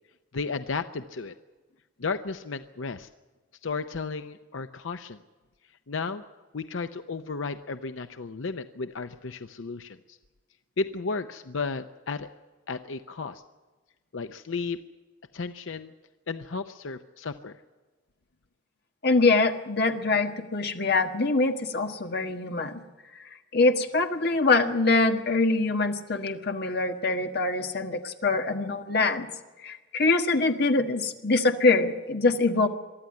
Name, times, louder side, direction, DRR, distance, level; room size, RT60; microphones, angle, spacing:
voice 1, 0.3-1.3 2.0-3.1 3.6-5.2 5.9-6.2 6.5-10.2 10.8-12.3 12.7-13.4 14.1-14.8 15.3-15.9 16.3-17.6, left 4 dB, 85° left, 9 dB, 0.7 m, -33 dB
voice 2, 19.0-22.8 23.1-23.2 23.5-29.3 29.6-32.7, left 3 dB, 55° left, 5 dB, 1.6 m, -24 dB
23.5 x 13.0 x 9.6 m, 1.3 s
head